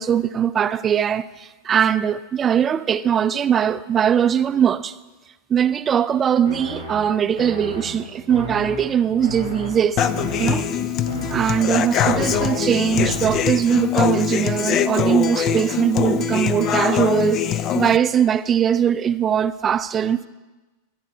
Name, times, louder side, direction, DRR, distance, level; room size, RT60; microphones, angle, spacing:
voice 1, 0.0-5.0 5.5-10.1 10.4-10.7 11.3-20.3, right 8 dB, 25° right, 0.5 m, -21 dB
sound 1, 6.4-13.8, right 1 dB, 85° left, 4.4 m, -33 dB
Human voice / Acoustic guitar, 10.0-18.0, left 8 dB, 35° left, 0.6 m, -23 dB
24.5 x 9.8 x 4.6 m
figure-of-eight pair, 90°, 0 cm